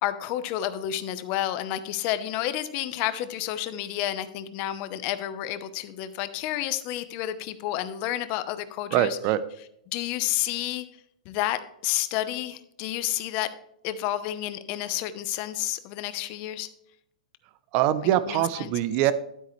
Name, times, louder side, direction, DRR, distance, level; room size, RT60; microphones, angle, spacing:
voice 1, 0.0-9.2 9.9-10.9 11.3-13.5 13.8-16.7 18.3-18.7, left 13 dB, 35° left, 12 dB, 0.8 m, -30 dB
voice 2, 8.9-9.4 17.7-19.1, right 12 dB, 35° right, 14 dB, 0.6 m, -23 dB
12.0 x 8.4 x 3.2 m, 0.77 s
hypercardioid pair, 155°, 4 cm